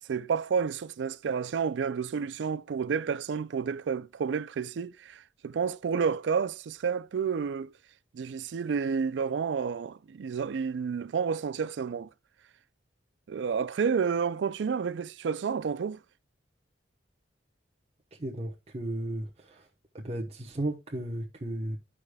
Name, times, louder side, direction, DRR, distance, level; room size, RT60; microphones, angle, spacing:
voice 1, 0.1-7.7 8.1-12.1 13.3-16.0, right 6 dB, 90° right, 0.4 m, -30 dB
voice 2, 18.2-19.7 19.9-21.8, right 1 dB, 35° right, 1.0 m, -34 dB
14.0 x 4.9 x 2.2 m
head